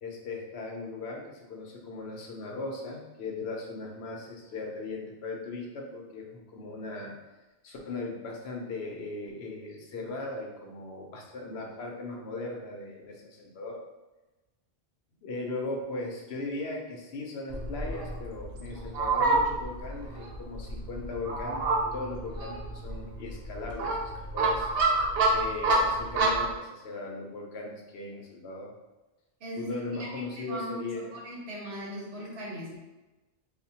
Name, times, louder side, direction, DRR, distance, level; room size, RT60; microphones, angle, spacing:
voice 1, 0.0-7.2 7.6-13.8 15.2-24.0 24.3-24.7 25.3-28.7 29.6-31.2, left 3 dB, 85° left, 0 dB, 0.9 m, -38 dB
Fowl, 17.5-26.5, right 2 dB, 70° right, 0.8 m, -28 dB
voice 2, 29.4-32.8, equal, 90° right, -3 dB, 1.2 m, -39 dB
4.1 x 2.1 x 2.8 m, 1.1 s
omnidirectional pair, 1.0 m